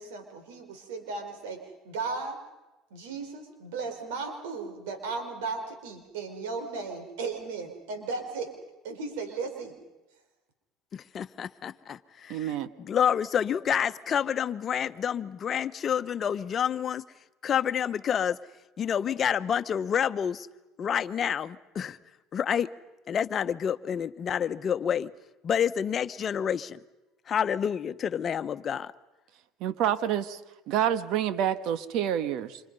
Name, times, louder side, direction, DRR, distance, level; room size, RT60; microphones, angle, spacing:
voice 1, 0.0-2.4 2.9-8.5 8.8-9.7, right 4 dB, 85° right, 6 dB, 4.7 m, -36 dB
voice 2, 10.9-12.5 12.8-17.0 17.4-18.4 18.8-20.5 20.8-22.0 22.3-22.7 23.1-25.1 25.4-26.8 27.3-28.9, left 8 dB, 40° left, 10 dB, 1.1 m, -28 dB
voice 3, 12.3-12.7 29.6-30.4 30.7-32.6, right 10 dB, 65° right, 12 dB, 1.5 m, -28 dB
28.5 x 26.5 x 5.6 m, 1.1 s
supercardioid pair, 100°, 0 cm